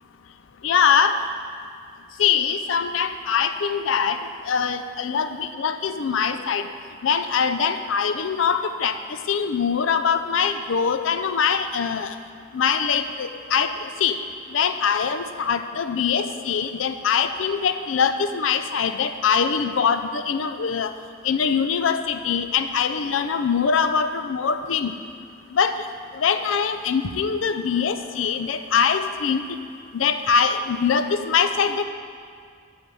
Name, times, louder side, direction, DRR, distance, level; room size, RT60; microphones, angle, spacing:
voice 1, 0.6-1.2 2.2-6.7 7.0-9.0 9.3-12.2 12.5-14.2 14.5-20.9 21.2-24.9 25.5-25.9 26.1-29.4 29.9-31.8, left 6 dB, 90° left, 10 dB, 0.5 m, -23 dB
7.8 x 5.1 x 6.9 m, 2.1 s
head